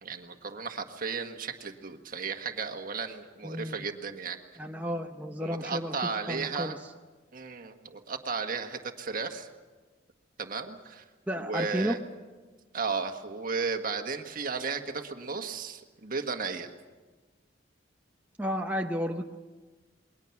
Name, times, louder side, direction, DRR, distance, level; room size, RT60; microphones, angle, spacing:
voice 1, 0.0-4.4 5.4-6.8 7.3-9.5 10.4-11.0 11.4-12.0 12.7-16.7, right 5 dB, 50° right, 5 dB, 1.6 m, -34 dB
voice 2, 3.4-3.8 4.6-6.0 6.3-6.8 11.3-12.0 18.4-19.4, equal, 10° right, 3 dB, 0.8 m, -32 dB
28.0 x 22.0 x 6.0 m, 1.3 s
head